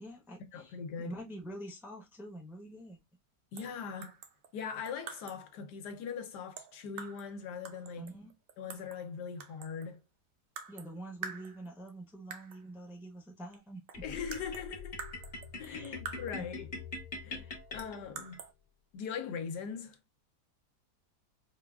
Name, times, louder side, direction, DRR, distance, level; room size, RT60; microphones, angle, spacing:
voice 1, 0.0-3.0 8.0-8.3 10.7-14.1 15.6-16.0 16.4-16.5 17.2-17.6, right 1 dB, 5° right, 0.4 m, -46 dB
voice 2, 0.5-1.2 3.5-4.2 4.5-8.1 8.6-10.0 14.0-15.0 15.6-16.7 17.2-18.4 18.9-20.0, left 6 dB, 80° left, 1.3 m, -41 dB
sound 1, 3.6-3.8 4.0-5.5 6.6-7.3 7.6-9.0 9.4-10.0 10.6-10.9 11.2-11.9 12.3-12.6 13.5-13.6 13.9-16.5 17.8-18.5, right 6 dB, 65° right, 0.9 m, -46 dB
sound 2, 13.9-18.4, left 3 dB, 45° left, 0.8 m, -43 dB
4.7 x 2.4 x 2.2 m
omnidirectional pair, 1.8 m